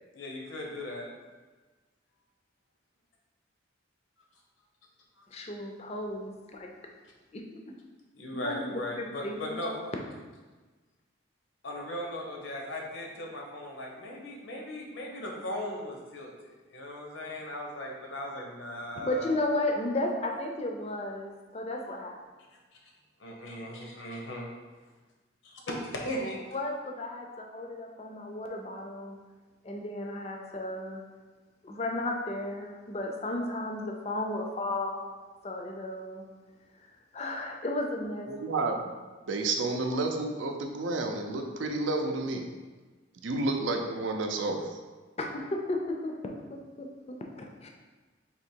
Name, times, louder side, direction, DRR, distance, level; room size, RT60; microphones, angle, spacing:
voice 1, 0.1-1.1 5.3-5.4 8.2-10.0 11.6-19.4 20.3-20.4 20.8-20.9 23.2-24.5 25.4-26.4, left 1 dB, 80° left, -1 dB, 0.9 m, -38 dB
voice 2, 5.3-6.7 7.3-7.7 8.3-9.6 19.0-22.1 26.5-29.2 29.6-31.0 31.6-36.2 37.1-38.3 45.2-47.7, left 1 dB, 30° left, 2 dB, 0.4 m, -34 dB
voice 3, 38.3-38.8 39.3-42.4 43.2-44.8, right 2 dB, 75° right, 3 dB, 0.5 m, -30 dB
3.6 x 2.9 x 4.4 m, 1.3 s
head